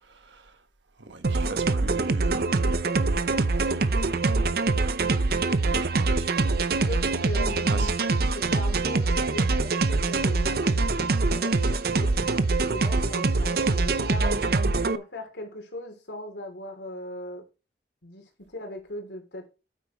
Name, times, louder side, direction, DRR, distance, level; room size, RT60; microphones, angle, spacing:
voice 1, 0.1-0.6 1.0-4.0 4.7-4.9 5.6-6.7 7.7-7.9, right 3 dB, 85° right, 1.2 m, -41 dB
sound 1, 1.2-15.0, right 3 dB, 55° right, 0.6 m, -24 dB
voice 2, 6.9-12.2 12.7-14.4 14.8-17.4 18.0-19.5, left 1 dB, 75° left, 3.0 m, -39 dB
8.8 x 8.4 x 3.0 m
head